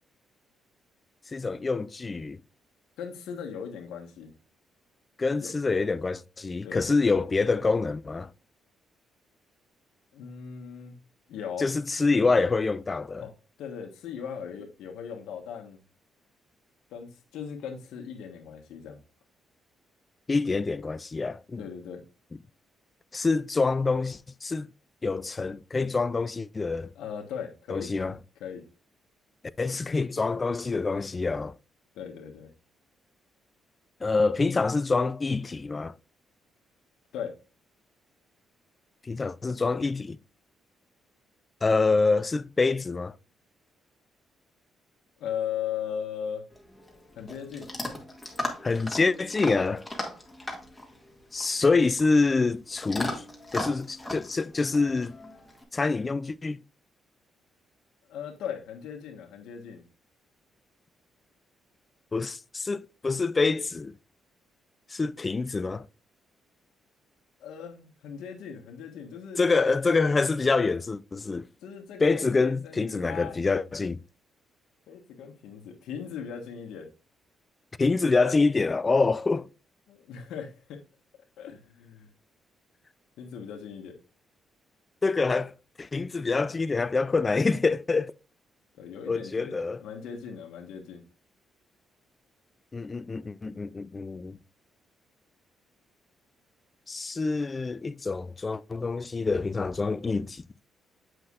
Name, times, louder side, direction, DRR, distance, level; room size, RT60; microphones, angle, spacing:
voice 1, 1.3-2.4 5.2-8.3 11.6-13.2 20.3-21.6 23.1-24.7 25.0-26.9 27.7-28.1 29.6-31.5 34.0-35.9 39.1-40.2 41.6-43.1 48.6-49.8 51.3-53.2 53.5-55.2 55.7-56.6 62.1-63.9 64.9-65.8 69.4-71.5 72.0-74.0 77.8-79.5 85.0-85.5 85.8-88.1 89.1-89.8 92.7-94.4 96.9-100.4, left 3 dB, 30° left, 0.4 m, -26 dB
voice 2, 3.0-4.3 5.4-5.5 6.6-6.8 10.1-11.0 11.3-11.7 13.2-13.3 13.6-15.8 16.9-19.0 21.6-22.0 26.9-27.9 28.4-28.6 31.9-32.5 37.1-37.3 45.2-46.5 47.1-47.7 58.1-59.8 67.4-69.4 71.6-73.4 74.9-76.9 79.9-80.8 81.4-82.1 83.2-83.9 88.8-91.0, left 8 dB, 85° left, 1.4 m, -38 dB
Chewing mastication / Dog, 46.5-55.6, left 1 dB, 10° left, 1.9 m, -38 dB
7.8 x 5.7 x 2.4 m
cardioid pair, 90°, 0 cm